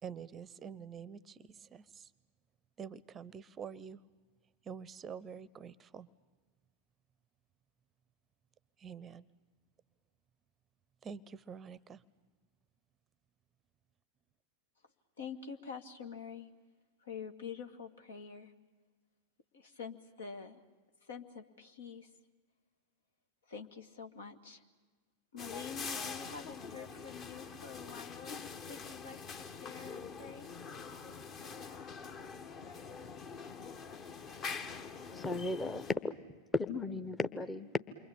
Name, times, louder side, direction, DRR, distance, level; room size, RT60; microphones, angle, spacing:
voice 1, 0.0-2.1 2.8-4.0 4.6-6.1 8.8-9.3 11.0-12.0, right 7 dB, 25° right, 22 dB, 0.8 m, -47 dB
voice 2, 15.2-16.5 17.0-18.5 19.5-20.6 21.0-22.1 23.4-24.7 25.3-30.5, left 6 dB, 65° left, 6 dB, 2.0 m, -47 dB
sound 1, 25.4-35.9, left 5 dB, 30° left, 1.6 m, -45 dB
voice 3, 35.1-36.1 36.5-37.7, left 2 dB, 15° left, 11 dB, 1.1 m, -35 dB
28.5 x 24.0 x 8.7 m, 1.4 s
figure-of-eight pair, 90°, 0 cm